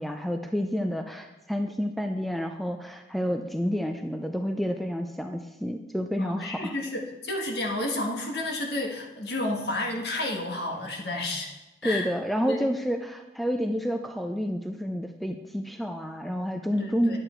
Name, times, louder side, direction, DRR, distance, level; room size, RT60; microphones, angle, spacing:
voice 1, 0.0-6.7 11.8-17.2, equal, ahead, 5 dB, 0.5 m, -29 dB
voice 2, 6.2-11.5 11.8-12.1 12.5-12.7 16.7-17.2, left 1 dB, 65° left, 1 dB, 1.7 m, -31 dB
10.5 x 8.3 x 4.5 m, 1.0 s
head